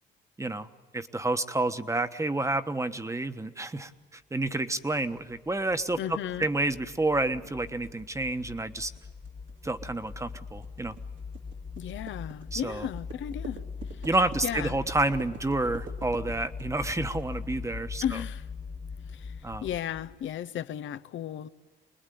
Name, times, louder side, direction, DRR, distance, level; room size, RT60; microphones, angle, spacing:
voice 1, 0.4-0.7 0.9-8.9 9.6-10.9 12.5-12.9 14.0-18.0 19.4-19.6, right 2 dB, 15° right, 1.2 m, -29 dB
sound 1, 5.2-20.3, left 5 dB, 20° left, 0.9 m, -41 dB
voice 2, 6.0-6.5 11.8-14.1 14.4-14.8 18.0-18.5 19.1-21.5, left 10 dB, 70° left, 0.9 m, -35 dB
sound 2, 6.0-17.6, right 6 dB, 70° right, 2.5 m, -48 dB
26.0 x 20.0 x 9.3 m
cardioid pair, 90°, 20 cm